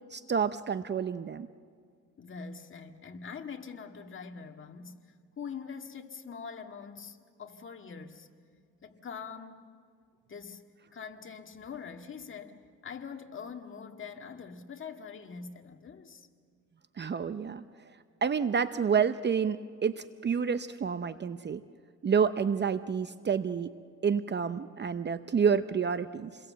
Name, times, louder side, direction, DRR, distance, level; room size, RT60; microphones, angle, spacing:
voice 1, 0.1-1.5 17.0-17.6 18.2-21.6 22.0-23.7 24.0-26.3, right 6 dB, 35° right, 12 dB, 0.7 m, -29 dB
voice 2, 2.2-8.3 8.8-9.7 10.3-10.6 10.9-16.3, left 6 dB, 40° left, 4 dB, 2.0 m, -44 dB
28.0 x 22.0 x 7.7 m, 2.1 s
cardioid pair, 90°, 30 cm